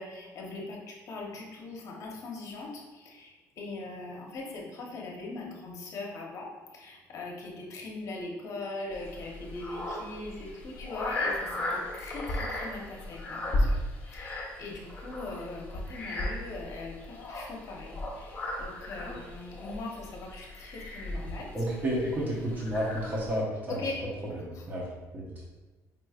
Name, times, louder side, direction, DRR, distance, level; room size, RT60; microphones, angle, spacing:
voice 1, 0.0-2.7 3.1-3.3 3.6-6.5 6.7-11.3 11.9-13.5 14.1-21.5 23.7-24.0, left 2 dB, 50° left, -1 dB, 0.9 m, -40 dB
sound 1, 8.9-23.4, left 1 dB, 25° left, 1.0 m, -35 dB
voice 2, 21.5-23.9 24.2-24.9 25.1-25.2, equal, 25° right, -5 dB, 0.9 m, -31 dB
5.1 x 3.1 x 2.4 m, 1.2 s
cardioid pair, 125°, 7 cm